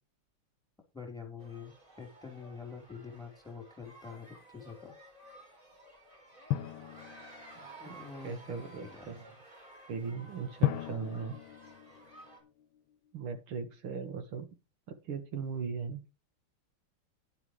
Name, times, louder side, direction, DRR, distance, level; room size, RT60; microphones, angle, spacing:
voice 1, 0.9-4.9 7.8-9.2, left 5 dB, ahead, 3 dB, 4.0 m, -46 dB
sound 1, 1.4-12.4, right 1 dB, 25° right, 4.6 m, -54 dB
Drum, 6.5-8.0 10.6-12.8, left 13 dB, 75° left, 1.4 m, -35 dB
voice 2, 8.2-9.3 9.9-11.4 13.1-14.5 14.9-16.0, right 5 dB, 80° right, 7 dB, 2.4 m, -38 dB
11.5 x 11.0 x 3.3 m, 0.29 s
omnidirectional pair, 2.3 m